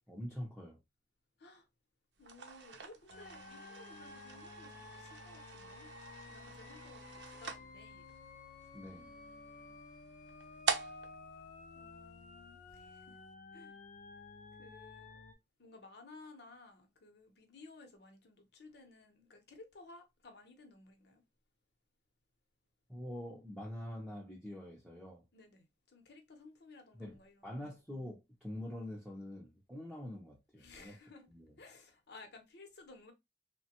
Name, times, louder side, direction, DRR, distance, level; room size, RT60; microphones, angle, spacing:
voice 1, 0.1-0.8 8.7-9.1 22.9-25.2 26.9-31.0 31.3-31.5, left 1 dB, ahead, 0.6 m, -45 dB
voice 2, 2.2-8.1 8.9-9.8 11.7-13.2 13.5-13.8 14.6-15.2 15.6-21.2 25.3-27.6 30.6-31.3 31.6-33.1, left 3 dB, 65° left, 0.8 m, -57 dB
sound 1, 2.2-12.6, right 5 dB, 70° right, 0.6 m, -44 dB
sound 2, 3.1-15.3, left 4 dB, 45° left, 0.4 m, -53 dB
3.2 x 2.2 x 2.8 m
head